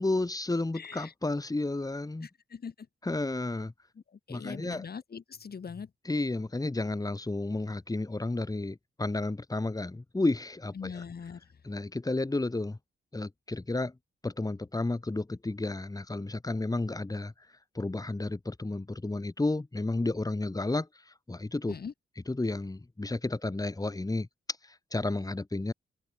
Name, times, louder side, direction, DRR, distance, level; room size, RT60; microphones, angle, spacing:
voice 1, 0.0-2.3 3.0-3.7 4.3-4.9 6.1-11.0 11.6-12.8 13.1-13.9 14.2-17.3 17.8-21.8 22.3-24.3 24.6-25.7, left 2 dB, 20° left, 5.3 m, -32 dB
voice 2, 0.7-1.1 2.2-2.9 4.1-5.9 10.7-11.4 21.7-21.9, left 6 dB, 50° left, 6.3 m, -41 dB
open air
cardioid pair, 95°, 20 cm